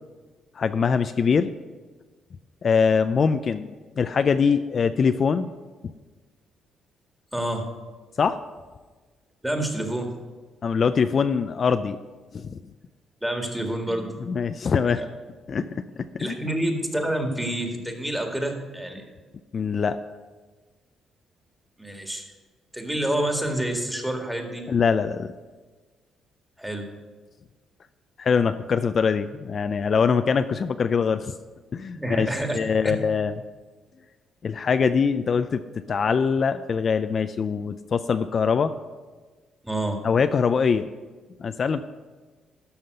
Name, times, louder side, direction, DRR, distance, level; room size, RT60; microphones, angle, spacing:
voice 1, 0.6-1.5 2.6-3.7 4.0-5.5 8.2-8.4 10.6-12.0 12.3-12.6 14.3-15.1 15.5-16.3 19.5-20.0 24.7-25.3 28.2-31.3 31.7-32.3 32.5-33.3 34.4-38.7 40.0-40.9 41.4-41.8, left 6 dB, 45° left, 10 dB, 0.4 m, -23 dB
voice 2, 7.3-7.7 9.4-10.1 13.2-14.1 15.0-15.1 15.5-15.6 16.2-19.1 21.8-22.3 22.7-24.6 26.6-26.9 31.9-32.6 32.8-32.9 39.6-40.0, right 1 dB, 5° right, 3 dB, 1.9 m, -28 dB
12.5 x 5.7 x 6.6 m, 1.4 s
cardioid pair, 90°, 0 cm